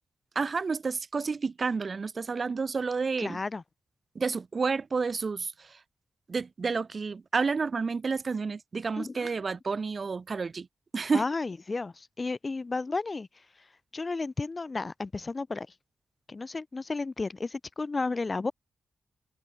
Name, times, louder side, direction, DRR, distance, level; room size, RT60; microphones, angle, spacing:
voice 1, 0.3-3.4 4.1-5.8 6.3-10.7 10.9-11.2, right 4 dB, 45° right, 2.6 m, -30 dB
voice 2, 3.2-3.6 9.0-9.3 11.1-13.3 13.9-15.7 16.3-18.5, left 3 dB, 35° left, 2.8 m, -33 dB
cardioid pair, 95°, 0 cm